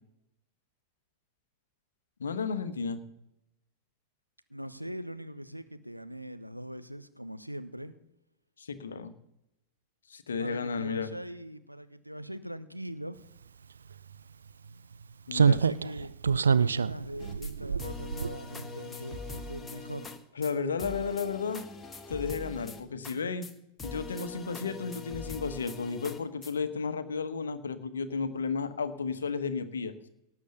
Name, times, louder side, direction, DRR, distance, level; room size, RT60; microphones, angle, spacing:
voice 1, 2.2-3.0 8.6-9.1 10.1-11.1 15.3-15.6 20.4-21.7 22.1-23.5 23.8-29.9, left 5 dB, 70° left, 11 dB, 1.3 m, -33 dB
voice 2, 4.5-7.9 10.4-13.2 15.5-20.1 20.4-21.0, equal, 90° right, 11 dB, 0.8 m, -41 dB
Slam, 13.9-14.0 15.3-18.8 19.1-19.3, right 6 dB, 70° right, 0.4 m, -26 dB
sound 1, 17.2-17.5 17.8-20.2 20.4-20.5 20.8-23.2 23.4-23.5 23.8-26.5, left 4 dB, 15° left, 1.5 m, -42 dB
18.0 x 7.3 x 6.8 m, 0.86 s
figure-of-eight pair, 90°, 0 cm